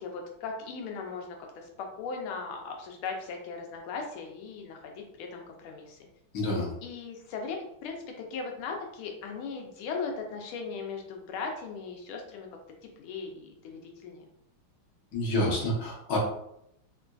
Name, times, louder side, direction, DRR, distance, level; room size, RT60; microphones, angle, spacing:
voice 1, 0.0-6.0 6.8-12.5 13.0-14.2, left 4 dB, 85° left, 2 dB, 1.4 m, -38 dB
voice 2, 6.3-6.7 15.1-16.2, left 1 dB, 60° left, -2 dB, 1.1 m, -28 dB
3.7 x 2.5 x 2.2 m, 0.77 s
omnidirectional pair, 2.3 m